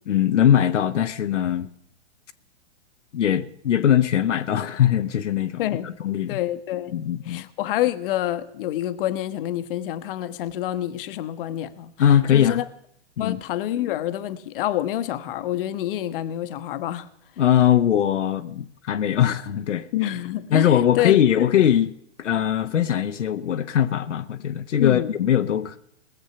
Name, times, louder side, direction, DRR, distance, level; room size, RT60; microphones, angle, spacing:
voice 1, 0.1-1.7 3.1-6.4 6.9-7.4 12.0-12.6 13.2-13.4 17.4-19.9 20.5-21.9 22.2-25.8, left 10 dB, 80° left, 0.9 m, -21 dB
voice 2, 5.6-5.9 6.3-6.9 7.2-11.9 12.3-12.6 13.2-17.1 19.9-21.5 24.8-25.1, left 13 dB, 50° left, 1.0 m, -27 dB
19.5 x 7.2 x 6.8 m
hypercardioid pair, 130°, 36 cm